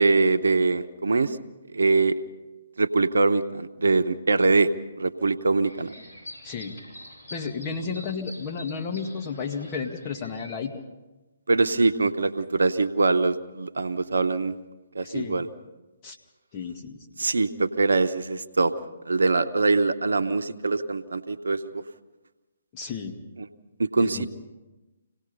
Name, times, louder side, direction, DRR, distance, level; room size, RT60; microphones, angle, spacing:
voice 1, 0.0-1.4 1.7-2.2 2.8-4.7 5.0-5.9 11.5-14.6 14.9-15.5 17.2-18.7 19.0-21.8 23.4-23.5 23.8-24.3, right 3 dB, 70° right, 9 dB, 1.0 m, -23 dB
sound 1, 5.6-10.7, left 1 dB, 60° left, 7.9 m, -46 dB
voice 2, 6.4-6.8 7.3-10.7 15.0-15.4 16.0-16.2 16.5-17.1 22.7-23.2 24.0-24.3, left 5 dB, 30° left, 3 dB, 2.1 m, -32 dB
26.5 x 18.0 x 5.5 m, 1.1 s
figure-of-eight pair, 135°, 0 cm